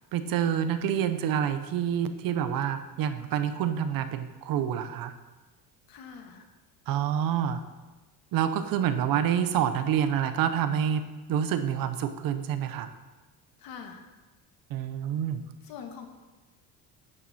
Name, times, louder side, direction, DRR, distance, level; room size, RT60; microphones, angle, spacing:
voice 1, 0.1-5.1 6.9-7.6 8.3-11.0 11.3-12.9 14.7-15.4, right 9 dB, 55° right, 10 dB, 0.8 m, -27 dB
voice 2, 5.9-6.4 13.6-14.0 15.6-16.1, left 7 dB, 60° left, 4 dB, 1.6 m, -43 dB
12.0 x 9.2 x 4.2 m, 1.2 s
cardioid pair, 160°, 40 cm